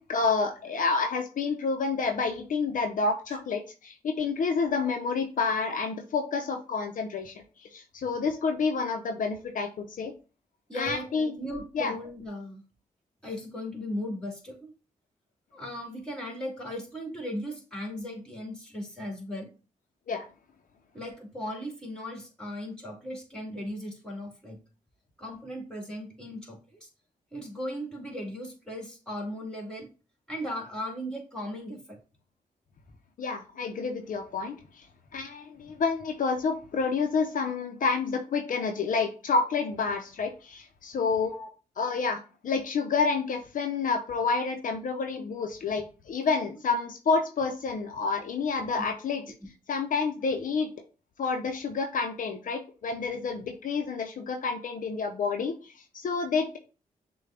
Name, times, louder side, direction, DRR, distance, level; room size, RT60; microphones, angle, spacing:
voice 1, 0.0-10.1 10.7-11.3 11.7-11.9 20.1-20.2 33.2-34.8 35.1-41.3 41.8-49.2 49.7-50.7 51.2-56.6, left 4 dB, 60° left, 4 dB, 0.6 m, -29 dB
voice 2, 10.7-12.6 13.2-14.7 15.5-19.5 20.9-24.6 25.2-26.9 27.3-29.9 30.3-32.0 41.3-41.5, equal, 5° left, 1 dB, 2.1 m, -37 dB
6.4 x 2.3 x 3.6 m, 0.35 s
supercardioid pair, 45°, 15 cm